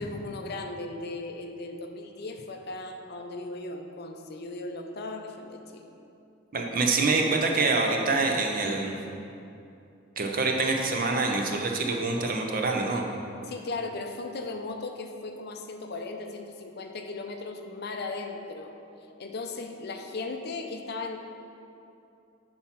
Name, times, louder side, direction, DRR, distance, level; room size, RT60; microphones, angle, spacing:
voice 1, 0.0-5.9 13.5-18.7 19.2-21.2, left 3 dB, 55° left, 5 dB, 0.6 m, -37 dB
voice 2, 6.5-9.0 10.2-13.1, right 3 dB, 45° right, 2 dB, 0.7 m, -26 dB
7.5 x 4.3 x 5.7 m, 2.7 s
head